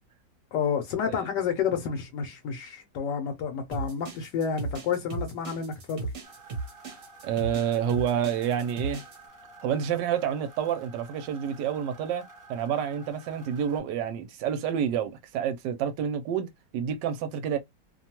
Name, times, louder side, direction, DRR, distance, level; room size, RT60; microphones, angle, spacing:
voice 1, 0.5-6.1, left 7 dB, 80° left, 1.2 m, -30 dB
sound 1, 3.7-9.2, right 3 dB, 50° right, 1.1 m, -36 dB
sound 2, 6.2-13.8, right 3 dB, 15° right, 0.7 m, -51 dB
voice 2, 7.2-9.0 9.6-12.2 12.5-17.6, right 8 dB, 75° right, 1.2 m, -28 dB
2.9 x 2.2 x 2.8 m
omnidirectional pair, 1.9 m